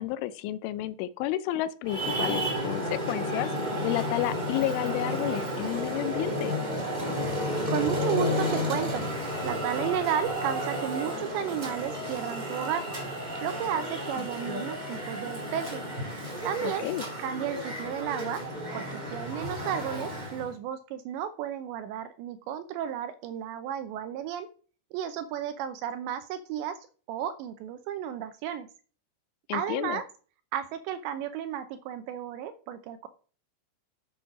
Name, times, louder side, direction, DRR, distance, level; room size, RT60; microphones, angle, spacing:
voice 1, 0.0-3.5 3.8-6.6 14.5-14.7 16.8-17.0 29.5-30.0, left 14 dB, 80° left, 15 dB, 3.1 m, -31 dB
Traffic noise roadway noise, 1.8-20.5, equal, 25° right, 0.8 m, -32 dB
voice 2, 7.7-9.1 9.4-12.8 13.4-15.8 16.4-16.9 17.2-18.4 18.7-24.5 24.9-28.7 29.5-30.0 30.5-33.1, right 9 dB, 80° right, 10 dB, 2.7 m, -33 dB
8.5 x 7.8 x 5.9 m, 0.40 s
omnidirectional pair, 5.7 m